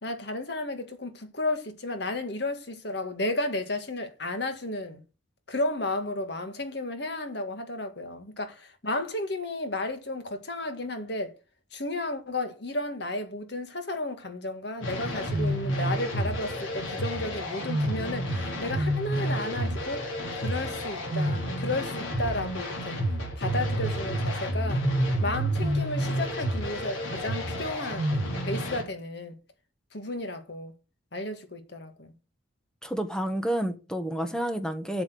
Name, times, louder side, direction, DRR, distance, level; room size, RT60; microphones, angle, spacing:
voice 1, 0.0-5.0 5.5-11.3 11.7-20.1 20.3-23.0 23.4-24.9 25.2-29.4 29.9-30.7 31.1-32.1, left 2 dB, 60° left, 1.9 m, -33 dB
sound 1, 14.8-28.8, equal, 85° left, 3.8 m, -29 dB
voice 2, 32.8-35.0, right 1 dB, 5° left, 1.2 m, -29 dB
8.1 x 7.2 x 6.8 m
head